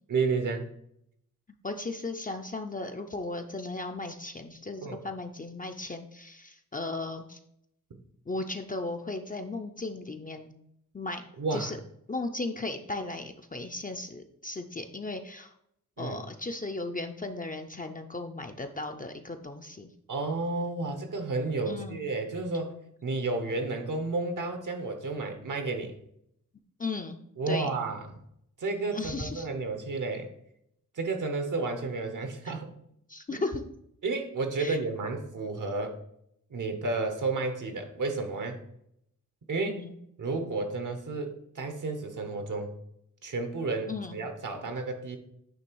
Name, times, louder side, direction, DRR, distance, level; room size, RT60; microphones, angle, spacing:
voice 1, 0.1-0.7 4.8-5.0 11.4-11.7 16.0-16.2 20.1-25.9 27.4-28.1 28.6-30.3 30.9-32.7 33.3-33.4 34.0-36.0 36.5-38.6 39.5-39.8 40.2-42.7 43.2-45.2, right 3 dB, 70° right, 6 dB, 1.0 m, -31 dB
voice 2, 1.6-7.4 8.3-10.6 10.9-11.8 12.1-15.5 16.0-19.9 21.7-22.0 26.8-27.2 27.5-27.7 28.9-29.5 32.5-32.6 33.1-33.7 34.6-34.8 39.7-39.9 43.9-44.2, left 2 dB, 25° left, 5 dB, 0.5 m, -36 dB
9.1 x 3.3 x 4.6 m, 0.74 s
wide cardioid pair, 140°, 32 cm